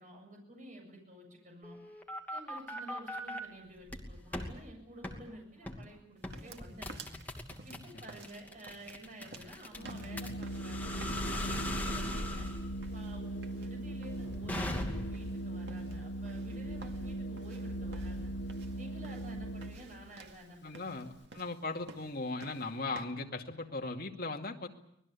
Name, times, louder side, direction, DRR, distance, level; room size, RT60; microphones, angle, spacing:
voice 1, 0.0-1.8 2.3-7.2 7.6-12.5 12.9-18.3 18.8-21.0, right 1 dB, 40° right, 2 dB, 7.7 m, -51 dB
sound 1, 1.6-3.4 3.9-4.5 5.0-5.2 5.7-5.9 6.2-15.3, left 1 dB, 10° left, 2.6 m, -39 dB
sound 2, 6.2-23.1, right 3 dB, 65° right, 2.3 m, -55 dB
Organ, 9.7-20.1, right 1 dB, 75° left, 0.9 m, -40 dB
voice 2, 20.6-24.7, left 3 dB, 55° left, 2 dB, 2.4 m, -38 dB
25.0 x 20.0 x 8.4 m, 0.75 s
head